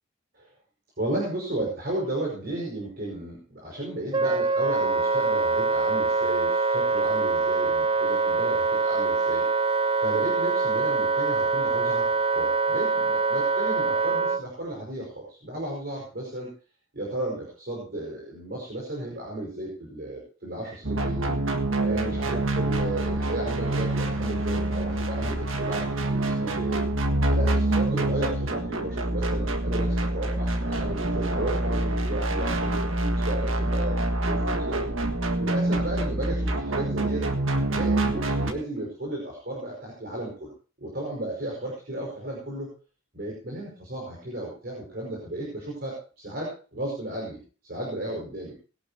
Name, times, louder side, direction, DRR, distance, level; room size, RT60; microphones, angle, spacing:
voice 1, 1.0-9.4 10.0-16.5 16.9-21.3 21.8-26.9 27.3-34.8 35.4-37.3 37.7-40.5 40.8-42.7 43.1-48.5, right 1 dB, 50° right, -2 dB, 5.4 m, -34 dB
Wind instrument woodwind instrument, 4.1-14.4, right 4 dB, 25° right, 0.5 m, -24 dB
sound 1, 20.8-38.5, right 1 dB, 75° right, 1.7 m, -26 dB
21.0 x 12.0 x 2.8 m, 0.36 s
head